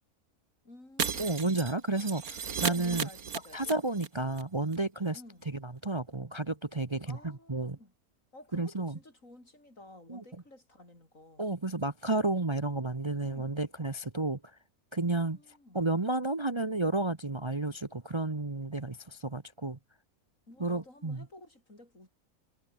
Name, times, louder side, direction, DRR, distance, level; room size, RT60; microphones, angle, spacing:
voice 1, 0.6-1.3 2.6-3.8 5.1-5.5 7.0-7.9 8.3-11.4 13.2-13.6 15.1-15.8 20.5-22.1, left 1 dB, 65° left, 8.4 m, -52 dB
Shatter, 1.0-4.1 4.3-4.4 4.7-4.8, right 6 dB, 90° right, 2.2 m, -35 dB
voice 2, 1.2-3.1 3.5-7.8 8.5-9.0 10.1-10.2 11.4-14.6 14.9-19.8 20.6-21.2, right 2 dB, 20° right, 1.1 m, -32 dB
omnidirectional pair, 1.5 m